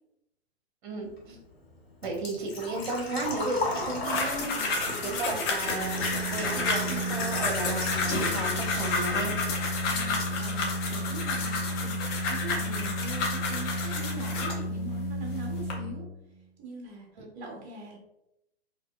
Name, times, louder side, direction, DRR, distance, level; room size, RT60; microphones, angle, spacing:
voice 1, 0.8-1.4 2.0-4.5 5.0-6.0 6.3-9.4 17.2-17.3, right 2 dB, 50° right, 2 dB, 0.9 m, -34 dB
Engine / Trickle dribble / Fill (with liquid), 1.1-9.0 9.3-10.3 10.6-10.7 12.6-12.7 12.9-13.2 13.6-13.7 13.9-14.0, left 2 dB, 70° left, 1.2 m, -36 dB
sound 1, 3.8-14.6 15.3-15.7, left 4 dB, 25° left, 0.6 m, -31 dB
voice 2, 4.4-5.5 9.9-16.1 16.6-17.1 17.3-18.0, right 2 dB, 25° right, 0 dB, 0.9 m, -42 dB
Organ, 5.6-16.4, equal, 5° left, 1.2 m, -33 dB
4.5 x 2.3 x 2.4 m, 0.84 s
figure-of-eight pair, 110°, 32 cm